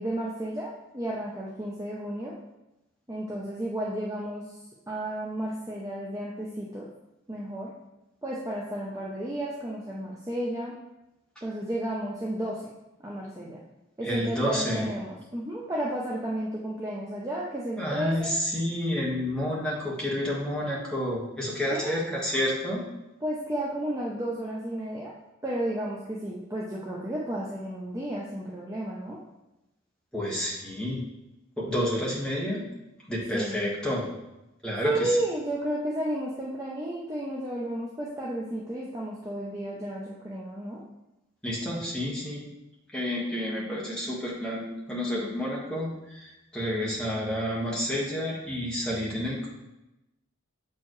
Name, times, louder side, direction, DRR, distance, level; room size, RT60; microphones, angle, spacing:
voice 1, 0.0-2.4 3.1-4.5 4.9-6.9 7.3-7.7 8.2-10.8 11.4-12.7 13.0-13.6 14.0-18.3 21.7-22.0 23.2-25.1 25.4-29.2 33.3-33.6 34.8-40.8, right 1 dB, 15° right, -4 dB, 0.6 m, -32 dB
voice 2, 14.0-14.8 17.8-22.8 30.1-31.0 31.6-32.6 33.1-34.1 34.6-35.2 41.4-42.5 42.9-49.5, equal, 5° left, -6 dB, 1.4 m, -29 dB
7.2 x 4.5 x 3.1 m, 0.94 s
head